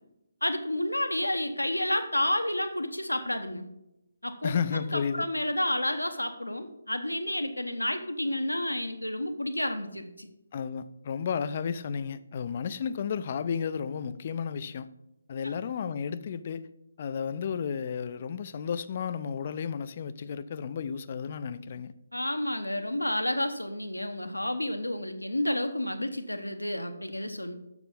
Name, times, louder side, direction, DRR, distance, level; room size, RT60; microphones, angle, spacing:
voice 1, 0.4-3.6 4.2-4.5 4.9-10.3 15.4-15.5 22.1-27.5, left 1 dB, 80° left, 0.9 m, -30 dB
voice 2, 4.4-5.3 10.5-14.9 15.3-16.7 17.0-21.9, left 6 dB, 35° left, 0.4 m, -32 dB
7.1 x 6.8 x 5.3 m
figure-of-eight pair, 145°, 0 cm